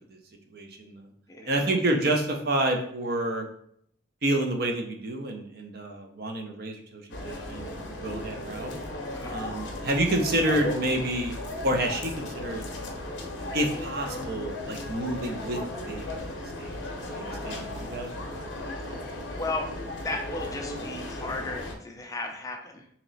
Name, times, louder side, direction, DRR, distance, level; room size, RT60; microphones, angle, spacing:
voice 1, 0.5-1.1 1.5-3.5 4.2-7.7 8.0-8.7 9.3-11.4 11.6-12.7 13.5-16.2 16.6-16.8 17.1-18.5, right 1 dB, 50° right, 3 dB, 0.5 m, -29 dB
voice 2, 1.3-1.8 9.1-9.5 19.3-19.7 20.0-22.9, left 2 dB, 15° left, 3 dB, 0.3 m, -35 dB
sound 1, 7.1-21.7, left 1 dB, 60° left, 0.6 m, -36 dB
3.0 x 2.9 x 3.9 m, 0.67 s
head